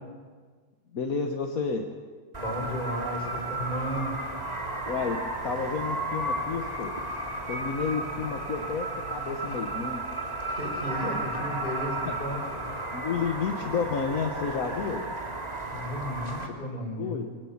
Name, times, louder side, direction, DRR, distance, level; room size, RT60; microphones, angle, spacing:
voice 1, 0.9-1.9 4.9-6.9 7.5-10.0 12.0-12.1 12.9-15.1 16.7-17.3, left 5 dB, 70° left, 3 dB, 1.7 m, -31 dB
voice 2, 2.3-4.2 10.5-12.6 15.7-17.2, equal, 30° left, 1 dB, 5.2 m, -34 dB
sound 1, 2.3-16.5, right 2 dB, 25° right, 2.4 m, -33 dB
23.5 x 18.0 x 7.2 m, 1.5 s
omnidirectional pair, 1.5 m